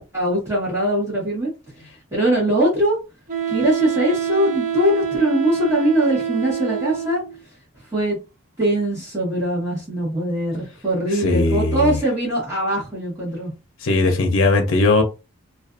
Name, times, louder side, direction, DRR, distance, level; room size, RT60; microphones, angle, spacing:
voice 1, 0.1-1.5 2.1-3.0 3.5-7.2 7.9-8.2 8.6-13.5, right 1 dB, 15° right, 1.1 m, -21 dB
Wind instrument woodwind instrument, 3.3-7.4, right 8 dB, 40° right, 0.4 m, -26 dB
voice 2, 11.2-12.0 13.8-15.0, left 2 dB, 70° left, 0.6 m, -18 dB
2.4 x 2.3 x 2.4 m
head